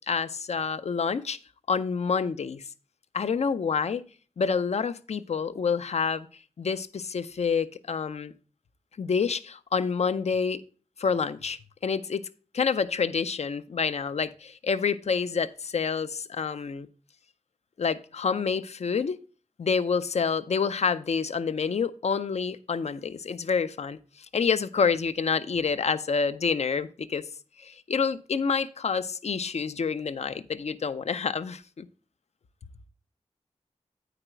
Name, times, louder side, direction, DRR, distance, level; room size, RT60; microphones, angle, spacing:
voice 1, 0.1-1.4 1.7-2.6 3.1-4.0 4.4-6.3 6.6-8.3 9.0-10.6 11.0-12.3 12.5-16.9 17.8-19.2 19.6-27.3 27.6-31.9, left 5 dB, 65° left, 0.5 m, -28 dB
9.0 x 5.0 x 4.4 m
wide cardioid pair, 100°, 12 cm